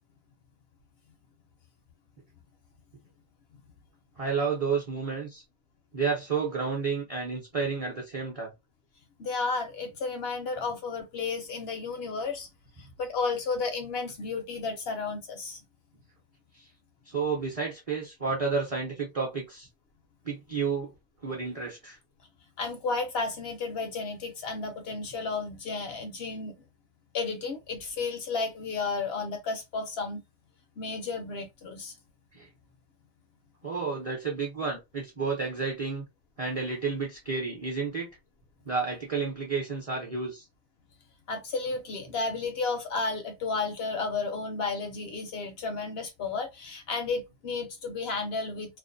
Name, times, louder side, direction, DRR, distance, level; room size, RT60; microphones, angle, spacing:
voice 1, 4.2-5.4 5.9-8.5 16.6-16.7 17.1-19.7 20.2-20.9 21.2-22.0 32.3-32.5 33.6-36.0 36.4-38.1 38.7-40.4, right 5 dB, 40° right, 0.5 m, -31 dB
voice 2, 9.2-12.5 12.8-15.6 22.6-26.5 27.1-30.2 30.8-31.9 41.3-48.8, left 4 dB, 65° left, 0.6 m, -32 dB
2.5 x 2.1 x 2.5 m
omnidirectional pair, 1.4 m